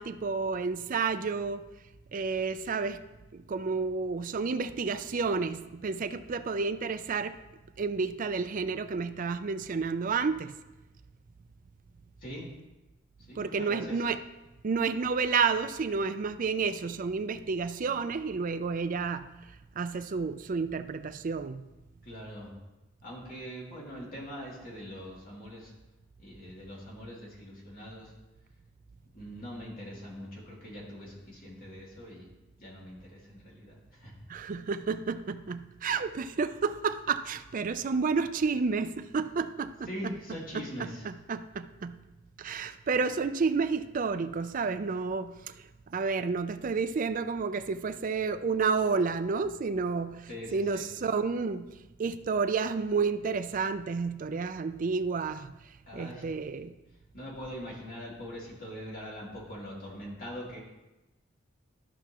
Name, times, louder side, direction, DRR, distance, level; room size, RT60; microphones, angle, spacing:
voice 1, 0.0-1.6 2.1-3.0 3.3-7.4 7.8-10.5 13.4-14.2 14.6-19.3 19.8-21.7 34.3-39.7 40.0-40.1 40.5-42.0 42.4-51.7 52.0-55.5 55.9-56.7, right 5 dB, 45° right, 11 dB, 0.4 m, -30 dB
voice 2, 13.3-14.0 22.0-22.5 23.0-25.7 26.2-28.1 29.1-32.3 32.6-34.1 39.8-41.1 50.3-50.9 55.9-56.2 57.1-60.6, equal, 50° left, -5 dB, 2.7 m, -42 dB
13.0 x 5.9 x 3.0 m, 1.0 s
head